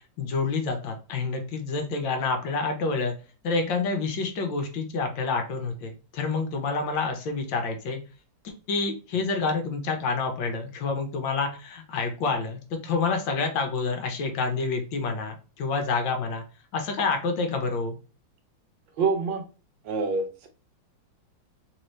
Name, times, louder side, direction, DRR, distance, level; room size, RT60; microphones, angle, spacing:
voice 1, 0.2-3.1 3.4-8.0 8.4-16.4 16.7-18.0, left 4 dB, 75° left, 4 dB, 1.5 m, -28 dB
voice 2, 19.0-19.4 19.8-20.5, right 4 dB, 75° right, 4 dB, 1.5 m, -26 dB
3.8 x 2.8 x 3.1 m, 0.34 s
omnidirectional pair, 2.1 m